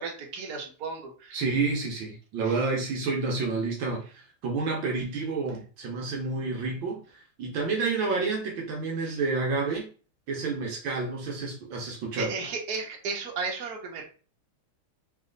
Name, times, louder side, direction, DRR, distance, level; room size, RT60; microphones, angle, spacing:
voice 1, 0.0-1.4 2.4-2.6 9.0-9.1 12.1-14.0, right 4 dB, 55° right, -1 dB, 1.5 m, -34 dB
voice 2, 1.3-9.9 10.3-12.3, right 4 dB, 70° right, -1 dB, 1.6 m, -29 dB
3.9 x 3.3 x 3.9 m, 0.38 s
omnidirectional pair, 2.3 m